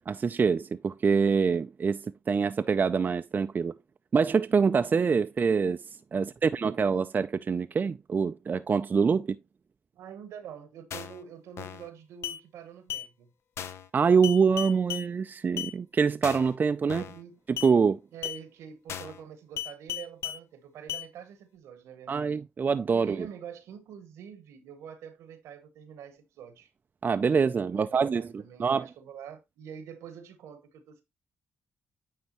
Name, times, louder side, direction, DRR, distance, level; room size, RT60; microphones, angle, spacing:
voice 1, 0.1-3.7 4.1-5.8 6.1-9.4 13.9-17.0 17.5-18.0 22.1-23.3 27.0-28.8, right 5 dB, 40° right, 0.4 m, -25 dB
voice 2, 9.9-13.3 16.8-17.4 18.1-22.3 22.9-26.7 27.7-31.0, right 8 dB, 80° right, 1.0 m, -46 dB
sound 1, 10.9-11.2 11.6-11.9 12.2-12.4 12.9-13.1 13.6-13.9 14.2-15.1 15.6-15.7 16.2-16.5 16.9-17.2 17.6-17.7 18.2-18.4 18.9-19.2 19.6-20.4 20.9-21.1, left 11 dB, 70° left, 0.6 m, -36 dB
9.3 x 3.4 x 3.0 m
supercardioid pair, 60°, 5 cm